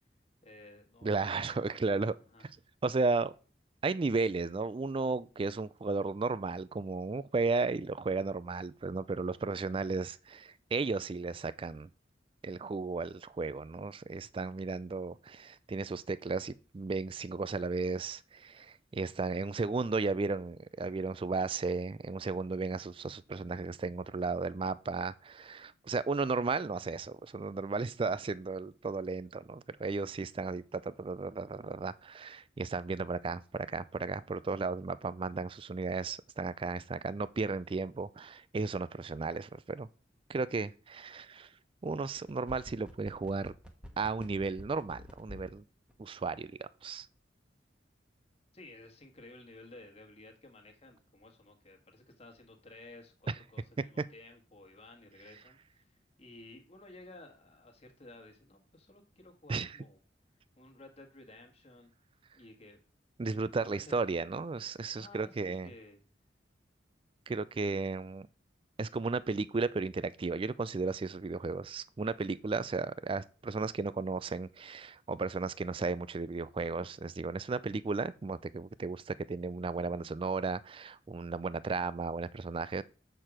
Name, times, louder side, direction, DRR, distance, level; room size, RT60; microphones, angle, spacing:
voice 1, 0.4-2.0 2.3-2.5 48.5-55.8 56.2-60.0 60.6-61.9 62.3-62.8 63.6-64.1 65.0-66.0, left 2 dB, 35° left, 1.5 m, -54 dB
voice 2, 1.0-2.1 2.8-3.3 3.8-11.9 12.4-39.9 40.3-41.5 41.8-43.5 44.0-45.6 46.0-47.1 53.3-53.4 54.0-54.1 59.5-59.8 63.2-65.7 67.3-68.3 68.8-82.8, right 3 dB, 30° right, 0.3 m, -34 dB
sound 1, 42.2-45.6 45.9-46.0, left 1 dB, 5° right, 1.1 m, -48 dB
7.6 x 4.6 x 4.9 m
head